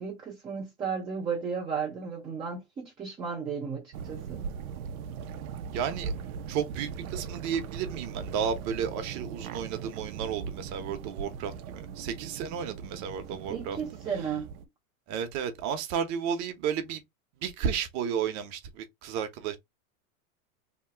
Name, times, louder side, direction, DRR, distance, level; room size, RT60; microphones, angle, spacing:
voice 1, 0.0-4.4 13.5-14.5, right 6 dB, 15° right, 0.4 m, -34 dB
sound 1, 3.9-14.6, right 6 dB, 85° right, 0.6 m, -39 dB
voice 2, 5.7-6.1 6.5-13.8 14.1-14.3 15.1-17.0 17.4-19.6, right 7 dB, 40° right, 0.8 m, -33 dB
2.9 x 2.1 x 3.3 m
hypercardioid pair, 120°, 42 cm